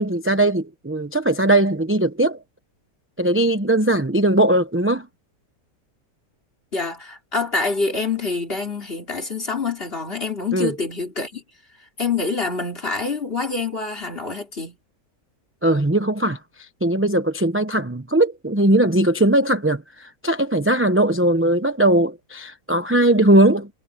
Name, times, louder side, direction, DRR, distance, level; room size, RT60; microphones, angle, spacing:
voice 1, 0.0-2.4 3.2-5.1 10.5-10.7 15.6-23.7, right 1 dB, 10° right, 0.6 m, -19 dB
voice 2, 6.7-11.4 12.0-14.8, left 4 dB, 35° left, 3.6 m, -26 dB
omnidirectional pair, 1.8 m